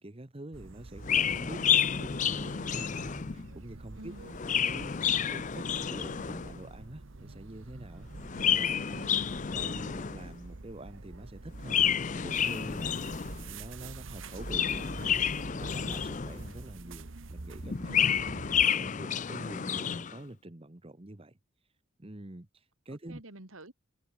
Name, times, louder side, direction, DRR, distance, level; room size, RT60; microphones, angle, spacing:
voice 1, 0.0-1.6 2.0-4.1 4.6-5.0 5.3-8.1 8.4-8.8 9.5-15.3 15.5-18.0 18.7-21.4 22.0-23.2, right 1 dB, 25° right, 1.1 m, -46 dB
sound 1, 0.5-18.7, right 2 dB, 65° right, 1.2 m, -46 dB
Chirp tweet, 1.0-3.5 4.2-6.6 8.2-10.3 11.6-13.5 14.3-16.6 17.6-20.2, left 8 dB, 35° left, 0.5 m, -30 dB
voice 2, 1.5-1.9 4.0-4.3 8.6-9.3 17.9-18.3 23.1-23.7, right 1 dB, 80° right, 3.2 m, -48 dB
head